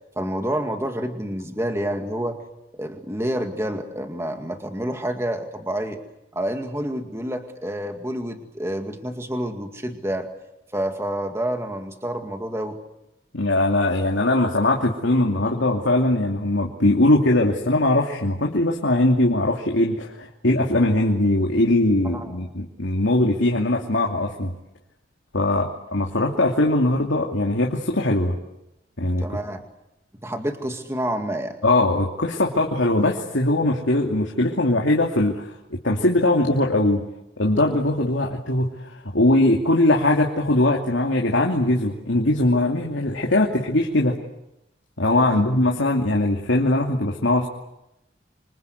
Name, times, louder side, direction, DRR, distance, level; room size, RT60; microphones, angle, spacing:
voice 1, 0.2-2.4 2.8-6.0 6.3-10.3 10.7-12.8 22.0-22.5 29.2-29.6 30.2-31.6 45.2-45.4, right 1 dB, 15° right, 5 dB, 2.1 m, -28 dB
voice 2, 13.3-24.5 25.3-28.4 29.0-29.2 31.6-37.0 37.4-44.2 45.0-47.5, left 1 dB, 85° left, 0 dB, 2.8 m, -21 dB
27.0 x 25.0 x 8.1 m, 0.90 s
head